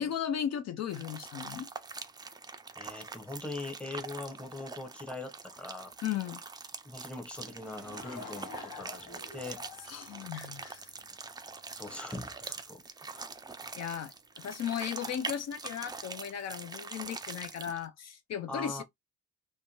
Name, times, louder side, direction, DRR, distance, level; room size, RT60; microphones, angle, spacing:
voice 1, 0.0-1.7 6.0-6.4 9.9-10.9 13.8-18.8, left 9 dB, 60° left, 0.5 m, -36 dB
sound 1, 0.9-17.8, right 4 dB, 15° right, 0.3 m, -44 dB
voice 2, 2.8-5.9 6.8-9.6 11.7-12.8 13.1-13.2 18.5-18.8, left 2 dB, 5° left, 0.7 m, -41 dB
Laughter / Crowd, 7.3-11.1, left 4 dB, 80° left, 1.2 m, -48 dB
2.5 x 2.1 x 2.9 m
cardioid pair, 90°, 30 cm